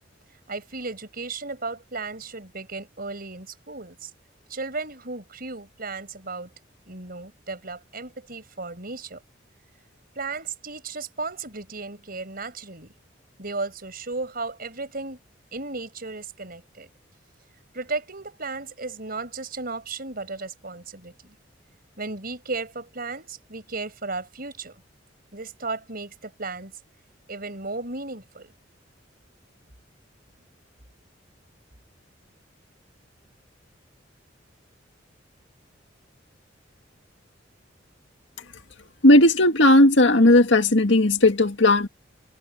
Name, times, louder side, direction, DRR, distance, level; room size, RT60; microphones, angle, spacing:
voice 1, 0.5-4.1 4.5-6.5 6.9-9.2 10.2-12.9 13.4-15.2 15.5-16.9 17.7-21.4 22.0-24.8 25.3-26.7 27.3-28.5, right 3 dB, 50° right, 5.8 m, -35 dB
voice 2, 39.0-41.9, left 1 dB, 70° left, 2.2 m, -16 dB
head